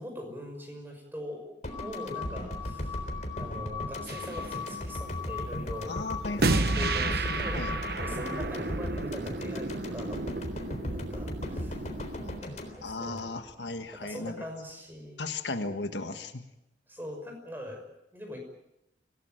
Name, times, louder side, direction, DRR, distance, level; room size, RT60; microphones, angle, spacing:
voice 1, 0.0-3.0 3.4-6.0 6.3-7.7 8.0-10.2 10.9-11.9 12.4-13.3 13.9-15.3 16.9-18.4, left 1 dB, 10° right, 3 dB, 5.9 m, -42 dB
sound 1, 1.6-13.8, equal, 40° left, 3.8 m, -38 dB
sound 2, 1.7-8.7, left 8 dB, 10° left, 4.2 m, -40 dB
sound 3, 4.1-4.4 6.4-12.4, right 3 dB, 55° right, 1.1 m, -32 dB
voice 2, 5.9-7.7 12.2-12.3 12.8-14.4 15.2-16.4, left 2 dB, 80° left, 7 dB, 1.7 m, -36 dB
25.5 x 17.5 x 9.0 m, 0.88 s
head